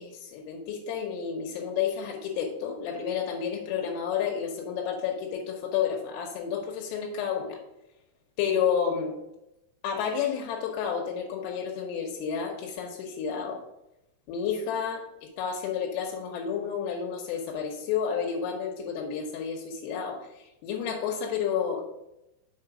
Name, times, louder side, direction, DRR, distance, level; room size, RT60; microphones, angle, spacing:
voice 1, 0.0-7.6 8.4-9.2 9.8-13.6 14.3-15.0 15.4-20.3 20.6-21.9, left 7 dB, 85° left, 1 dB, 3.5 m, -30 dB
7.2 x 4.8 x 4.8 m, 0.89 s
omnidirectional pair, 5.8 m